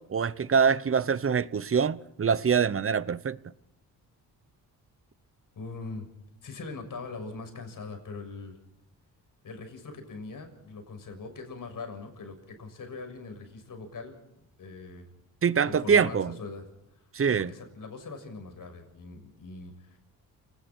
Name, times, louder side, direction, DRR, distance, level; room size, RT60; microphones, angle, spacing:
voice 1, 0.0-3.4 15.4-16.4 17.1-17.5, right 6 dB, 35° right, 0.9 m, -24 dB
voice 2, 5.6-6.1 6.4-8.6 9.4-14.1 14.6-15.1 15.6-16.7 17.2-20.0, left 3 dB, 60° left, 6.8 m, -41 dB
30.0 x 19.5 x 4.5 m
cardioid pair, 75°, 37 cm